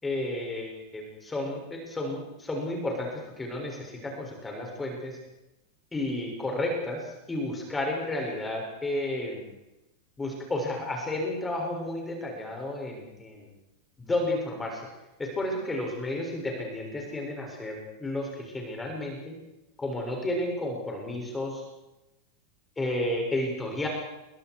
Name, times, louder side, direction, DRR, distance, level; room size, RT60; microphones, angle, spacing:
voice 1, 0.0-5.2 5.9-9.5 10.2-13.5 14.0-14.9 15.2-19.3 19.8-21.6 22.8-23.9, left 1 dB, 10° left, 0 dB, 7.0 m, -32 dB
30.0 x 25.5 x 4.9 m, 0.93 s
figure-of-eight pair, 90°, 0 cm